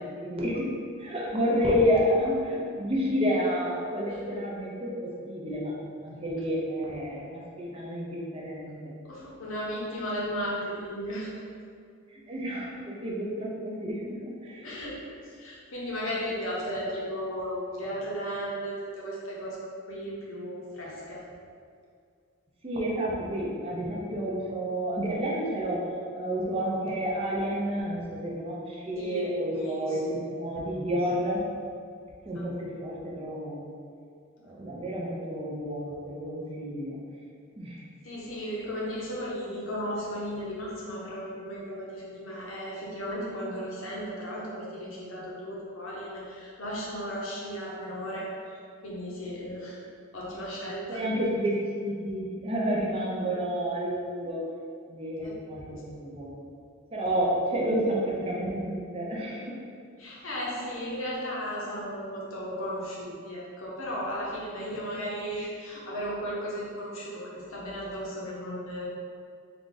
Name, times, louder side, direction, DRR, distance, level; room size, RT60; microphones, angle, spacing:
voice 1, 0.0-5.7 6.0-9.0 12.3-14.7 22.6-31.4 32.2-33.6 34.4-37.0 37.6-37.8 50.3-50.4 50.9-54.4 54.9-56.4 56.9-59.6, equal, 30° right, -4 dB, 0.6 m, -30 dB
voice 2, 9.0-11.4 14.6-21.3 28.9-29.2 29.5-30.0 32.3-32.5 38.0-48.6 48.8-49.8 50.1-51.0 55.2-55.3 55.6-55.8 60.0-68.9, equal, 70° left, -5 dB, 0.9 m, -35 dB
3.8 x 2.4 x 3.9 m, 2.3 s
head